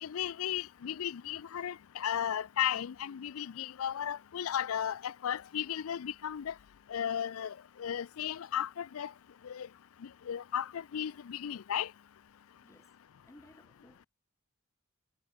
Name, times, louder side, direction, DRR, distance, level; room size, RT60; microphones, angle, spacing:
voice 1, 0.0-6.5 6.9-9.1 9.4-9.7 10.0-11.9, left 9 dB, 75° left, 0.4 m, -35 dB
voice 2, 12.6-13.0 13.2-14.1, left 1 dB, 15° left, 1.5 m, -59 dB
head